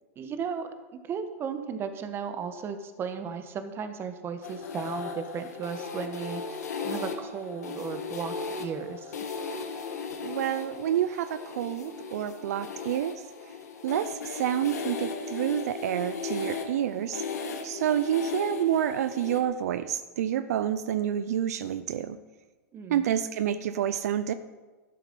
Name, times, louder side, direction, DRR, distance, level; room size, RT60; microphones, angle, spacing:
voice 1, 0.2-0.7 1.1-6.6 6.8-9.1 22.7-23.1, right 6 dB, 25° right, 9 dB, 1.3 m, -35 dB
sound 1, 4.4-19.4, left 5 dB, 90° left, 1.9 m, -37 dB
voice 2, 10.2-13.2 13.8-17.2 17.6-22.2 22.9-24.3, right 10 dB, 75° right, 12 dB, 0.6 m, -28 dB
12.0 x 12.0 x 5.4 m, 1.3 s
hypercardioid pair, 125°, 9 cm